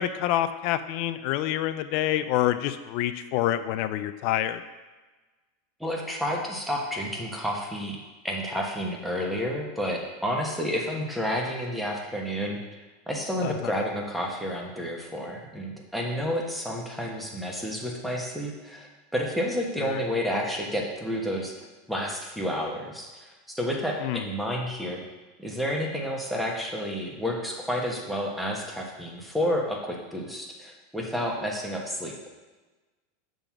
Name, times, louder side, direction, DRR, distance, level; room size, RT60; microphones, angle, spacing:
voice 1, 0.0-4.6 13.4-13.7 19.8-20.0 24.0-24.2, left 13 dB, 55° left, 11 dB, 0.4 m, -27 dB
voice 2, 5.8-8.0 8.2-12.6 13.1-25.0 25.4-32.1, equal, ahead, -1 dB, 1.3 m, -30 dB
6.7 x 3.8 x 6.0 m, 1.2 s
supercardioid pair, 125°, 0 cm